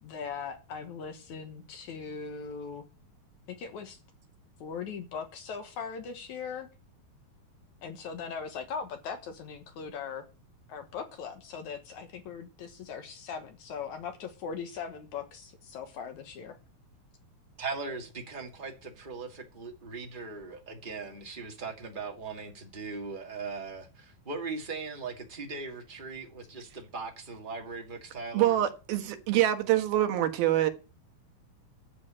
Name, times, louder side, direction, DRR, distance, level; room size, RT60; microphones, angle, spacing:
voice 1, 0.0-2.8 3.5-4.0 4.6-6.7 7.8-10.3 10.7-16.6, left 6 dB, 65° left, 2.2 m, -39 dB
voice 2, 17.6-28.5, right 4 dB, 25° right, 1.1 m, -39 dB
voice 3, 28.3-30.7, right 13 dB, 85° right, 3.2 m, -25 dB
12.5 x 5.6 x 8.7 m
omnidirectional pair, 4.2 m